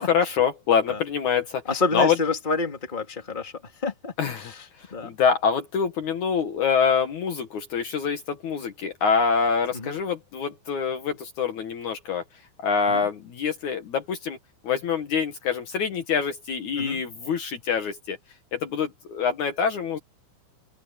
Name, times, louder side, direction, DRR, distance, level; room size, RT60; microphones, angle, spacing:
voice 1, 0.0-1.6 1.9-2.1 4.2-4.5 5.0-12.2 12.6-14.4 14.6-18.2 18.5-20.0, left 6 dB, 60° left, 2.7 m, -25 dB
voice 2, 1.6-3.5 3.8-5.1 9.7-10.0 12.9-13.1 16.8-17.0, left 4 dB, 15° left, 2.6 m, -29 dB
open air
omnidirectional pair, 4.2 m